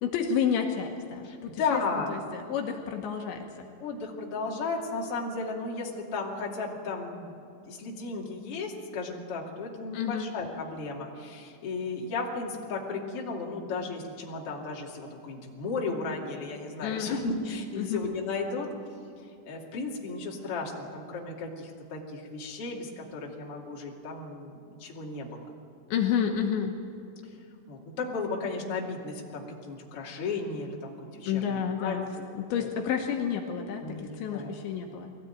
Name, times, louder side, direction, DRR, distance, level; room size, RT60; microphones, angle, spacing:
voice 1, 0.0-1.8 2.1-3.5 9.9-10.3 16.8-17.2 17.8-18.0 25.9-26.8 31.3-35.1, left 7 dB, 75° left, 3 dB, 3.4 m, -30 dB
voice 2, 1.2-2.3 3.8-18.7 19.5-25.4 27.7-32.7 33.8-34.5, left 3 dB, 35° left, -2 dB, 2.7 m, -35 dB
22.5 x 16.0 x 9.2 m, 2.5 s
omnidirectional pair, 5.6 m